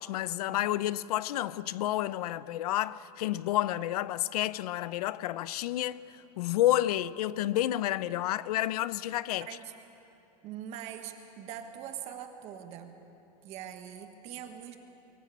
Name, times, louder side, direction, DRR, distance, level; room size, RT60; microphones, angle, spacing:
voice 1, 0.0-9.5, left 14 dB, 75° left, 0.6 m, -30 dB
voice 2, 10.4-12.9 13.4-14.8, right 10 dB, 35° right, 1.6 m, -42 dB
23.5 x 16.5 x 8.6 m
supercardioid pair, 165°, 20 cm